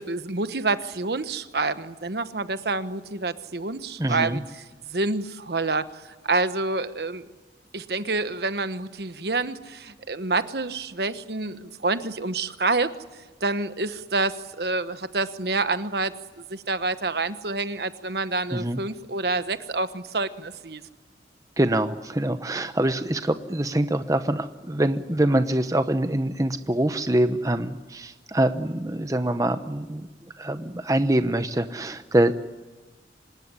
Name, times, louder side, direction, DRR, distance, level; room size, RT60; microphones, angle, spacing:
voice 1, 0.0-4.4 4.8-7.3 7.7-12.9 13.4-20.8, right 3 dB, 65° right, 11 dB, 1.2 m, -28 dB
voice 2, 4.0-4.4 18.5-18.8 21.6-30.1 30.4-32.3, right 1 dB, 20° right, 9 dB, 0.9 m, -24 dB
25.5 x 19.5 x 9.9 m, 1.2 s
head